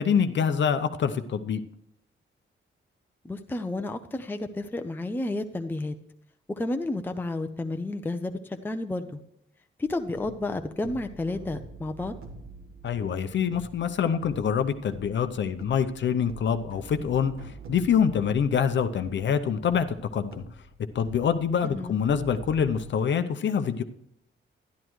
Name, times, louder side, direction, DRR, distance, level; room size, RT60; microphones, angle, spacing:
voice 1, 0.0-1.6 12.8-17.3 17.7-20.4 20.9-23.8, left 7 dB, 60° left, 9 dB, 0.7 m, -25 dB
voice 2, 3.2-5.9 6.6-9.2 9.8-12.1 21.6-22.0, left 2 dB, 10° left, 6 dB, 0.5 m, -31 dB
sound 1, 9.8-22.9, right 1 dB, 90° right, 1.5 m, -46 dB
11.5 x 11.0 x 3.1 m, 0.76 s
wide cardioid pair, 140°, 21 cm